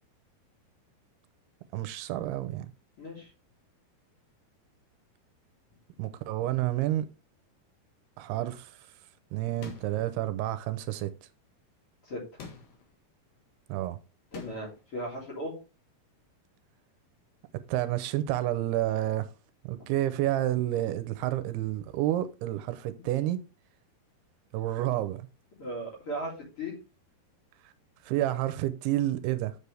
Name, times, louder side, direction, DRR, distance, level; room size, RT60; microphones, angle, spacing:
voice 1, 1.7-2.7 6.0-7.1 8.2-8.9 9.3-11.1 13.7-14.0 17.7-19.3 19.6-23.4 24.5-25.3 28.0-29.6, right 14 dB, 85° right, 2.6 m, -29 dB
voice 2, 3.0-3.3 12.1-12.2 14.3-15.6 19.7-19.9 25.6-26.8, equal, 35° left, 3.8 m, -37 dB
sound 1, 9.6-10.1 12.4-12.9 14.3-14.8, left 5 dB, 60° left, 2.7 m, -45 dB
7.8 x 6.8 x 3.4 m
omnidirectional pair, 4.6 m